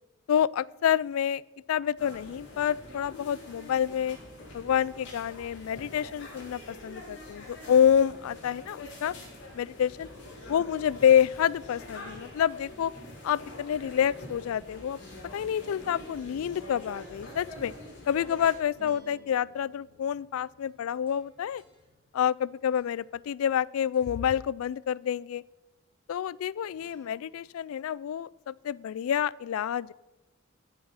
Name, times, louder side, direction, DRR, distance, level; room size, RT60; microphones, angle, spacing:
voice 1, 0.3-1.4 1.7-4.2 4.5-9.1 9.5-10.1 10.5-12.9 13.2-15.0 15.3-17.7 18.1-21.6 22.1-25.4 26.1-29.9, left 9 dB, 85° left, 22 dB, 0.3 m, -28 dB
sound 1, 2.0-18.5, left 1 dB, 55° left, 4.3 m, -45 dB
sound 2, 17.3-23.6 23.9-24.3 26.7-27.7, left 1 dB, 25° right, 2.2 m, -59 dB
15.0 x 6.9 x 5.7 m, 1.1 s
head